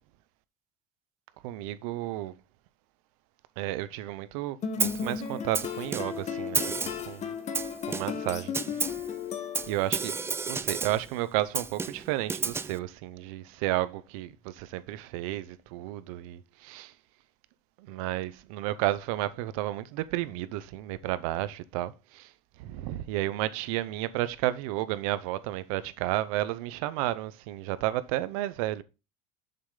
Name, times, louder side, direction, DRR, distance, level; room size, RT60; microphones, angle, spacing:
voice 1, 1.4-2.3 3.6-7.3 7.9-8.5 9.7-10.2 10.5-16.9 17.8-22.3 22.6-28.8, right 15 dB, 85° right, 0.7 m, -32 dB
sound 1, 4.6-10.0, left 6 dB, 40° left, 1.2 m, -35 dB
Snare drum, 4.8-5.1 5.5-6.3 6.5-7.1 7.5-8.3 8.5-9.1 9.5-11.1 11.5-12.8, right 5 dB, 15° right, 0.4 m, -31 dB
6.9 x 5.6 x 3.8 m
supercardioid pair, 115°, 17 cm